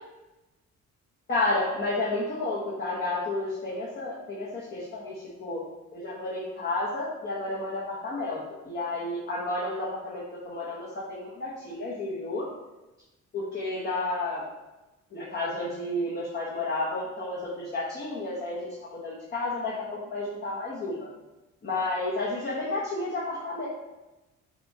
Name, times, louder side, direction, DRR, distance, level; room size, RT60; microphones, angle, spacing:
voice 1, 1.3-5.6 5.9-12.4 13.3-14.4 15.1-21.1 21.6-23.7, left 2 dB, 35° left, -7 dB, 1.0 m, -31 dB
5.9 x 2.3 x 2.7 m, 1.0 s
cardioid pair, 90°, 30 cm